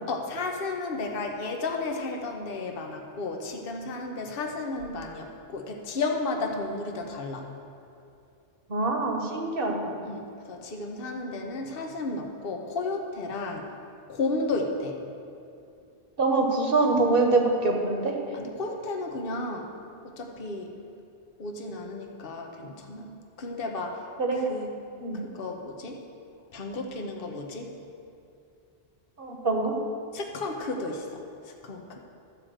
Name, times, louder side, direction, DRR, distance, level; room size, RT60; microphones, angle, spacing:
voice 1, 0.1-7.4 10.0-13.7 14.1-15.0 18.3-19.7 20.0-20.7 21.4-23.1 23.4-24.0 24.3-24.7 25.2-26.0 26.5-27.7 30.1-32.0, left 3 dB, 60° left, 2 dB, 1.1 m, -33 dB
voice 2, 8.7-9.7 16.2-18.1 24.2-24.4 25.0-25.2 29.2-29.7, right 3 dB, 55° right, 2 dB, 1.4 m, -24 dB
12.5 x 4.9 x 7.6 m, 2.6 s
omnidirectional pair, 1.1 m